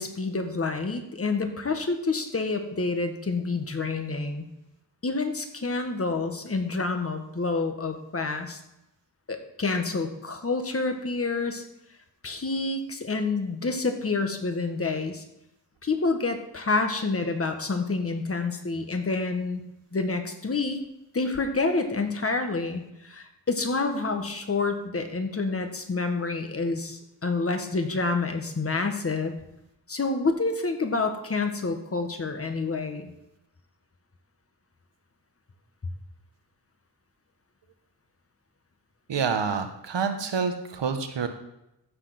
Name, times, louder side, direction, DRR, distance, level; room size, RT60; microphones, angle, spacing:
voice 1, 0.0-4.5 5.0-8.6 9.3-11.6 12.2-15.2 15.8-19.6 19.9-20.8 21.1-29.3 29.9-33.1, left 3 dB, 35° left, 5 dB, 1.5 m, -28 dB
voice 2, 39.1-41.3, right 6 dB, 80° right, 6 dB, 1.5 m, -27 dB
15.0 x 5.0 x 6.0 m, 0.86 s
wide cardioid pair, 110°, 42 cm